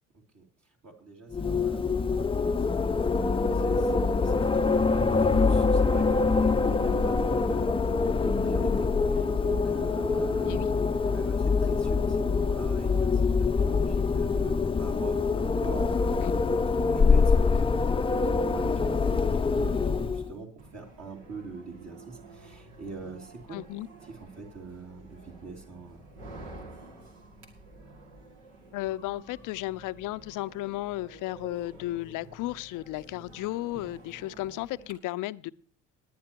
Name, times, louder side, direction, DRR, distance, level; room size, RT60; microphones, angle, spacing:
voice 1, 0.8-16.3 16.9-23.6 24.1-26.0, right 3 dB, 45° right, 2.7 m, -43 dB
Wind, 1.3-20.3, left 4 dB, 15° left, 0.6 m, -25 dB
sound 1, 20.6-34.9, right 2 dB, 75° right, 2.4 m, -50 dB
voice 2, 23.5-23.9 28.7-35.5, left 17 dB, 55° left, 0.6 m, -34 dB
20.0 x 10.0 x 2.9 m
hypercardioid pair, 55°, 37 cm